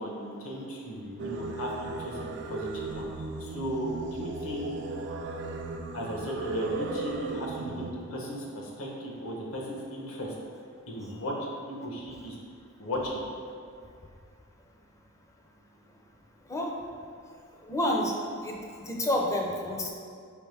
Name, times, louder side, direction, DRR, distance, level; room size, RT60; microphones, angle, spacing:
voice 1, 0.0-4.7 5.9-10.3 10.9-11.3 11.7-12.4 12.8-13.2, equal, 70° left, -2 dB, 0.9 m, -36 dB
Singing, 1.2-7.9, right 3 dB, 55° right, 0.3 m, -36 dB
voice 2, 17.6-19.9, left 1 dB, 15° left, -1 dB, 0.4 m, -29 dB
4.7 x 3.5 x 3.3 m, 2.3 s
head